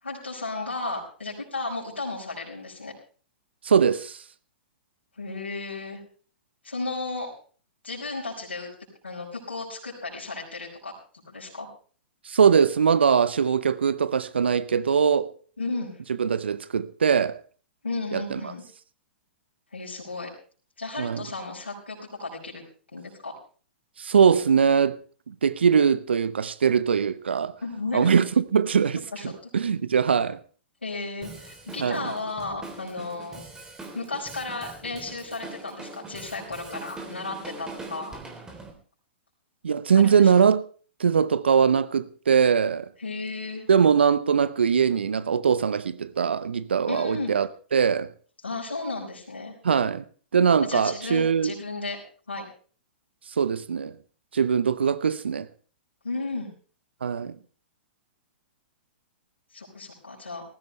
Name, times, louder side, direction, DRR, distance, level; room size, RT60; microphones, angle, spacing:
voice 1, 0.0-2.9 5.2-6.0 6.6-7.3 7.8-8.7 9.0-10.9 11.3-11.7 15.6-15.9 17.8-18.6 19.7-20.3 20.8-22.6 22.9-23.3 27.6-28.2 29.1-29.5 30.8-33.4 33.9-38.2 39.9-40.3 43.0-43.6 46.9-47.3 48.4-49.6 50.6-52.0 52.3-52.5 56.0-56.5 59.5-60.4, left 3 dB, 80° left, 5.4 m, -34 dB
voice 2, 3.6-4.2 12.3-15.3 16.2-17.4 18.1-18.5 21.0-21.2 24.0-25.0 25.3-27.5 27.9-30.4 31.8-32.1 39.6-40.6 41.0-42.9 43.7-48.1 49.6-50.0 50.3-51.5 53.4-54.0 54.3-55.5 57.0-57.3, right 6 dB, 70° right, 0.9 m, -21 dB
Drum kit, 31.2-38.7, right 3 dB, 10° right, 3.5 m, -42 dB
18.5 x 15.5 x 3.3 m
figure-of-eight pair, 110°, 6 cm